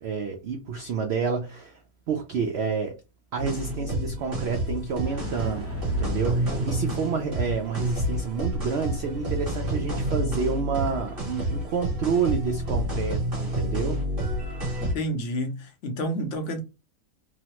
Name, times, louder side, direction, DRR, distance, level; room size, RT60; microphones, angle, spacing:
voice 1, 0.0-1.8 2.1-2.9 3.3-14.0, right 6 dB, 80° right, 0.5 m, -29 dB
sound 1, 3.4-14.9, right 1 dB, 35° right, 1.4 m, -29 dB
sound 2, 5.1-10.5, right 2 dB, 15° right, 0.5 m, -42 dB
voice 2, 14.8-16.6, equal, 60° left, 0.8 m, -30 dB
3.0 x 2.0 x 2.8 m
omnidirectional pair, 1.6 m